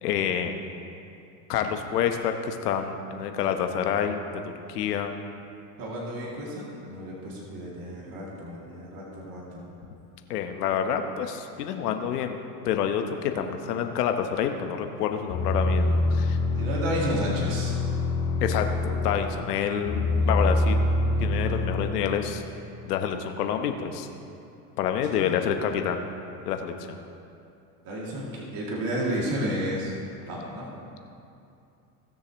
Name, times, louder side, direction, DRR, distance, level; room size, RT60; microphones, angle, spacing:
voice 1, 0.0-0.5 1.5-5.1 10.3-16.4 18.4-20.8 21.2-22.4 22.8-24.1 24.8-26.0 26.4-27.0, left 8 dB, 85° left, 6 dB, 1.1 m, -28 dB
voice 2, 5.8-9.6 16.5-17.8 25.1-25.3 25.6-25.7 27.8-29.9 30.3-30.7, equal, 50° right, -4 dB, 2.6 m, -32 dB
sound 1, 15.3-19.4 19.8-21.9, left 2 dB, 65° left, 2.4 m, -25 dB
18.5 x 6.7 x 3.1 m, 2.7 s
hypercardioid pair, 95°, 46 cm